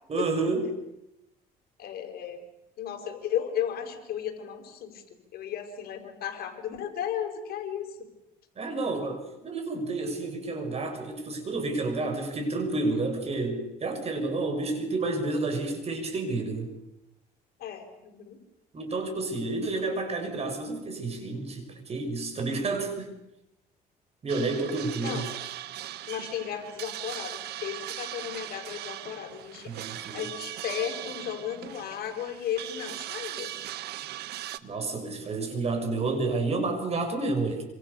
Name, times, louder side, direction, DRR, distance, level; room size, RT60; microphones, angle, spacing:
voice 1, 0.1-0.7 8.6-16.7 18.7-23.2 24.2-25.3 29.7-30.2 34.6-37.6, right 3 dB, 40° right, 5 dB, 6.6 m, -30 dB
voice 2, 1.8-2.4 2.8-5.0 5.3-8.1 17.6-18.4 25.0-25.2 26.1-29.7 30.1-33.5, left 9 dB, 65° left, 5 dB, 4.9 m, -34 dB
sound 1, 24.3-34.6, right 13 dB, 75° right, 1.4 m, -39 dB
26.0 x 26.0 x 6.9 m, 0.89 s
cardioid pair, 110°, 17 cm